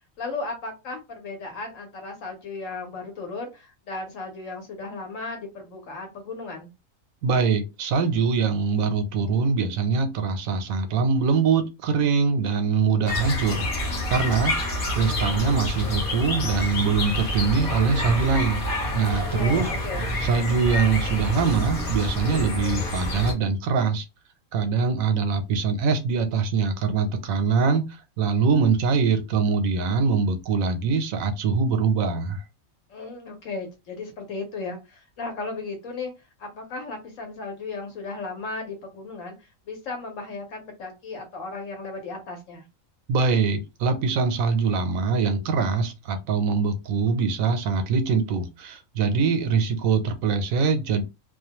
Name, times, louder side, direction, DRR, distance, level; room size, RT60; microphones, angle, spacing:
voice 1, 0.2-6.7 19.3-20.1 32.9-36.1 36.4-42.7, left 3 dB, 70° left, 1.1 m, -35 dB
voice 2, 7.2-14.6 14.9-18.6 18.9-19.7 20.2-24.1 24.5-32.4 43.1-51.0, right 5 dB, 80° right, 1.0 m, -23 dB
sound 1, 13.1-23.3, left 1 dB, 45° left, 0.9 m, -28 dB
2.5 x 2.2 x 2.8 m
omnidirectional pair, 1.4 m